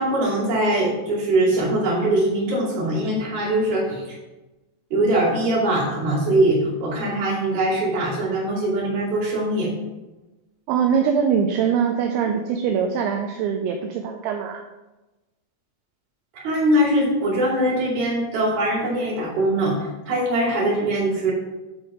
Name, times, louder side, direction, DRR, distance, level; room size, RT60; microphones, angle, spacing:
voice 1, 0.0-4.2 4.9-9.7 16.3-21.3, right 1 dB, 50° right, -6 dB, 4.1 m, -22 dB
voice 2, 10.7-14.6, right 7 dB, 85° right, 4 dB, 2.7 m, -22 dB
9.6 x 4.4 x 4.9 m, 1.1 s
omnidirectional pair, 5.8 m